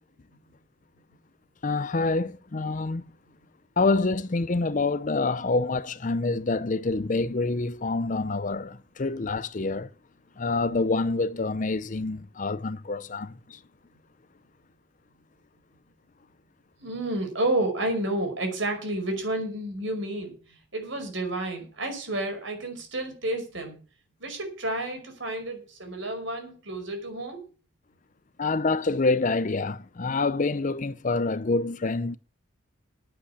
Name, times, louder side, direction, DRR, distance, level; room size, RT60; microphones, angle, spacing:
voice 1, 1.6-3.0 3.8-9.9 10.4-13.6 28.4-32.2, left 3 dB, 40° left, 0.6 m, -27 dB
voice 2, 16.8-23.8 24.2-27.4, right 1 dB, 70° right, 5.3 m, -30 dB
10.5 x 8.5 x 8.4 m
head